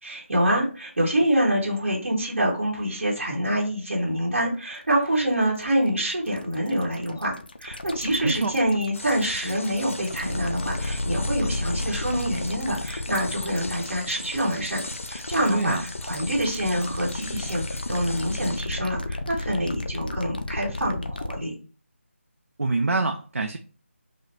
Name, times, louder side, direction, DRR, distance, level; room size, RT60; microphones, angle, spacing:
voice 1, 0.0-7.3 7.6-14.8 15.1-21.5, right 1 dB, 60° right, 1.7 m, -26 dB
sound 1, 4.7-21.4, left 2 dB, 40° left, 0.4 m, -33 dB
voice 2, 8.2-8.5 15.5-15.8 22.6-23.6, right 3 dB, 90° right, 0.6 m, -25 dB
sound 2, 8.9-18.6, left 2 dB, 80° left, 0.7 m, -40 dB
4.9 x 2.2 x 4.2 m
figure-of-eight pair, 180°, 7 cm